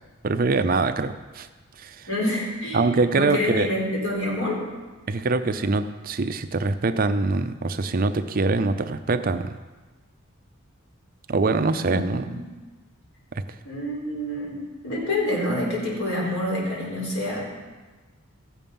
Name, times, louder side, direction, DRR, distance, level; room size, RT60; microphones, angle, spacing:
voice 1, 0.2-1.5 1.8-2.0 2.7-3.7 5.1-9.6 11.3-12.3 13.4-13.5, right 3 dB, 40° right, 10 dB, 0.5 m, -23 dB
voice 2, 2.1-4.6 11.8-12.3 13.6-17.4, left 1 dB, 90° left, -4 dB, 4.3 m, -27 dB
15.0 x 7.2 x 5.4 m, 1.3 s
head